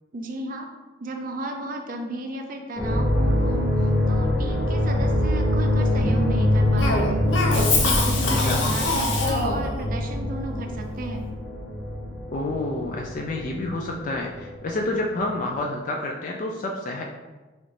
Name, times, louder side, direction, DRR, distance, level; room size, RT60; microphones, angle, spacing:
voice 1, 0.1-0.7 1.0-7.1 7.5-11.3, right 2 dB, 50° right, 3 dB, 0.5 m, -34 dB
sound 1, 2.8-14.9 15.1-15.6, left 1 dB, 5° right, 0.7 m, -24 dB
Cough, 6.8-9.7, left 3 dB, 85° left, 0.7 m, -24 dB
voice 2, 8.1-8.6 12.3-17.0, left 2 dB, 45° left, 0 dB, 0.4 m, -29 dB
3.8 x 3.1 x 3.2 m, 1.2 s
head